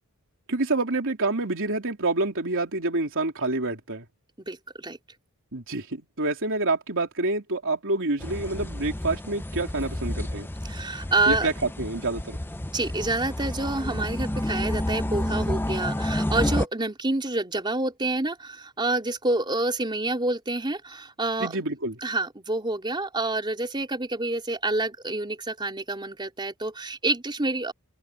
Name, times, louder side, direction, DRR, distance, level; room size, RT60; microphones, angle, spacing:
voice 1, 0.5-4.0 5.5-10.5 11.3-11.5 11.8-12.4 21.4-21.9, right 2 dB, 60° right, 3.6 m, -27 dB
voice 2, 4.5-5.0 10.6-11.5 12.7-21.6 22.0-27.7, right 2 dB, 20° right, 3.5 m, -28 dB
sound 1, 8.2-16.7, left 1 dB, 10° left, 0.6 m, -30 dB
open air
head